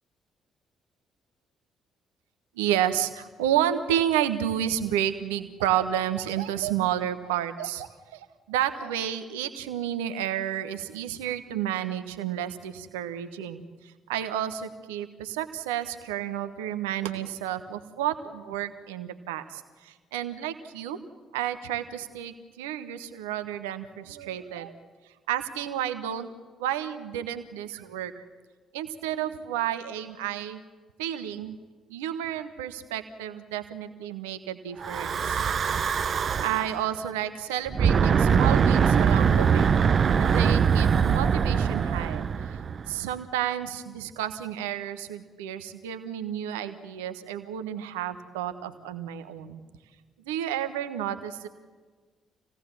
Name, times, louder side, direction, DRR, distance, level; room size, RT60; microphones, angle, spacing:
voice 1, 2.6-21.0 21.3-24.7 25.3-26.3 26.6-28.2 28.7-30.6 31.0-31.6 31.9-35.4 36.4-39.7 40.2-42.3 42.9-49.6 50.3-51.5, right 11 dB, 75° right, 10 dB, 1.3 m, -31 dB
Breathing / Wind, 34.8-36.8 37.7-43.0, right 7 dB, 45° right, 0.8 m, -22 dB
27.0 x 17.5 x 7.2 m, 1.4 s
figure-of-eight pair, 45°, 0 cm